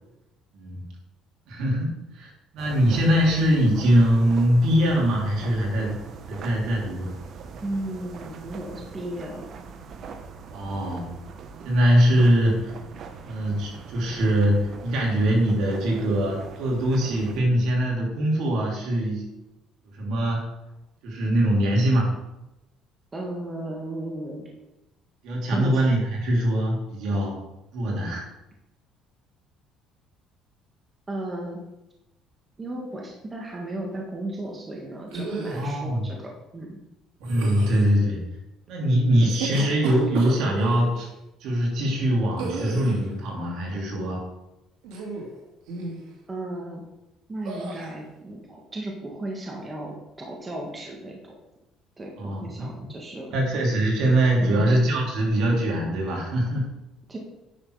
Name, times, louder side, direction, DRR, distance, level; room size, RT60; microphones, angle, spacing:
voice 1, 1.5-1.9 2.1-5.9 6.3-7.1 10.5-11.1 11.6-12.7 13.2-19.2 19.9-20.4 21.0-22.1 25.2-27.4 27.7-28.2 35.5-36.1 37.2-38.2 38.7-41.1 41.4-44.2 52.2-52.9 53.3-56.7, equal, 70° right, -2 dB, 3.1 m, -22 dB
sound 1, 2.6-17.4, right 5 dB, 50° right, 0.9 m, -42 dB
voice 2, 7.6-9.5 23.1-24.5 25.5-25.8 31.1-31.6 32.6-36.8 46.3-46.8 47.3-51.3 52.0-53.4 54.4-54.7 57.1-57.2, right 1 dB, 20° right, -1 dB, 1.6 m, -35 dB
sound 2, 35.1-35.7 37.2-37.9 39.1-40.8 42.4-43.1 44.8-45.3 45.7-46.1 47.4-47.9, right 3 dB, 85° right, 2.5 m, -33 dB
9.9 x 6.3 x 4.8 m, 0.96 s
cardioid pair, 125°, 0 cm